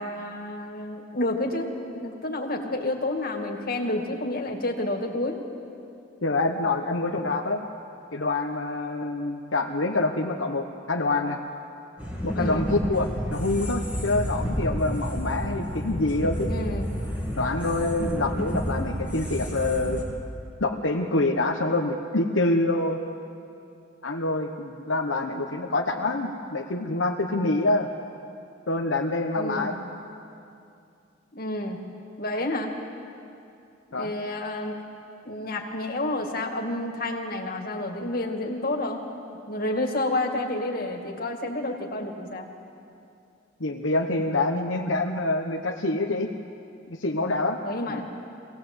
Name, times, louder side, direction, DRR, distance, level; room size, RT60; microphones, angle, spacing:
voice 1, 0.0-5.4 12.3-12.7 16.5-16.9 29.4-29.8 31.3-31.8 32.2-32.7 33.9-34.7 35.2-39.0 39.5-42.5 47.6-48.1, left 2 dB, 45° left, 1 dB, 2.4 m, -30 dB
voice 2, 6.2-7.6 8.1-11.4 12.2-16.5 17.4-20.0 20.6-23.1 24.0-27.9 28.7-29.7 33.9-34.1 43.6-46.3 46.9-47.6 47.9-48.0, left 2 dB, 80° left, 2 dB, 1.1 m, -26 dB
sound 1, 12.0-20.0, equal, 5° right, 2.6 m, -30 dB
24.0 x 18.0 x 8.0 m, 2.6 s
head